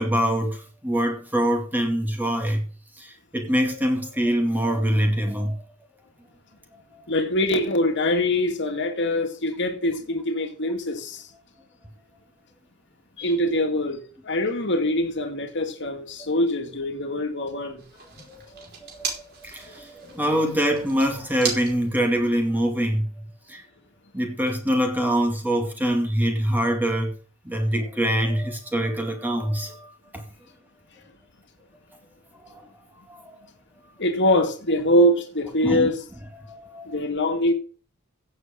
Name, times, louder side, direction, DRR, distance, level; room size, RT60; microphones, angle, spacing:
voice 1, 0.0-2.6 3.0-5.6 6.9-7.0 16.2-16.3 18.5-23.1 23.5-23.6 24.1-27.1 27.4-30.2 32.5-32.6 33.1-33.4 35.6-35.9 36.4-36.9, equal, 10° right, 2.3 m, -24 dB
voice 2, 7.1-11.2 13.2-17.8 34.0-36.0 36.9-37.5, left 1 dB, 55° left, 2.3 m, -23 dB
sound 1, 17.8-22.9, right 5 dB, 50° right, 5.1 m, -37 dB
16.0 x 7.9 x 3.9 m
head